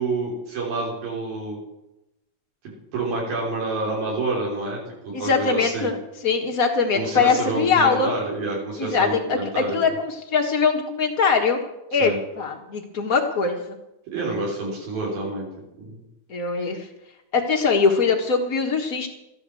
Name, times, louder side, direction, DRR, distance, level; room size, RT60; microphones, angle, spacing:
voice 1, 0.0-1.6 2.9-4.8 5.2-5.9 6.9-9.8 12.0-12.2 14.1-15.5 15.8-16.0, right 3 dB, 80° right, -3 dB, 5.5 m, -28 dB
voice 2, 5.1-6.0 6.2-8.1 8.8-11.6 11.9-13.8 16.3-16.9 17.3-19.1, left 5 dB, 85° left, 2 dB, 0.7 m, -22 dB
14.5 x 9.9 x 7.6 m, 0.90 s
omnidirectional pair, 4.1 m